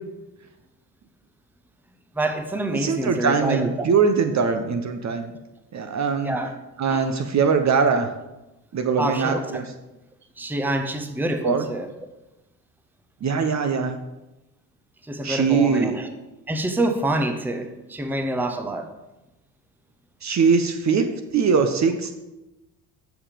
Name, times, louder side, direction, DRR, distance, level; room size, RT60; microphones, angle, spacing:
voice 1, 2.2-3.9 6.2-6.5 6.9-7.1 9.0-9.4 10.4-11.9 15.1-16.1 16.5-18.9, right 1 dB, 5° right, 7 dB, 0.8 m, -26 dB
voice 2, 2.7-5.3 5.7-6.4 6.8-8.1 8.7-9.7 11.4-11.7 13.2-14.0 15.2-16.0 20.2-21.0 21.3-22.1, right 5 dB, 35° right, 7 dB, 0.8 m, -21 dB
7.2 x 5.7 x 5.0 m, 0.98 s
hypercardioid pair, 60°, 48 cm